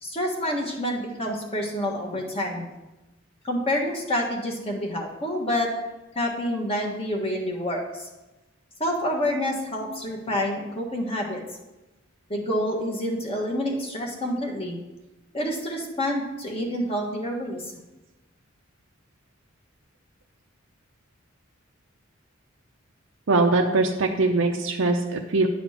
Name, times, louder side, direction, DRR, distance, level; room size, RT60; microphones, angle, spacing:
voice 1, 0.0-2.7 3.4-5.7 6.1-8.1 8.8-11.4 12.3-14.8 15.3-17.6, left 1 dB, 30° left, -1 dB, 1.6 m, -28 dB
voice 2, 23.3-25.5, right 3 dB, 85° right, 0 dB, 0.7 m, -22 dB
10.5 x 4.2 x 5.7 m, 1.0 s
head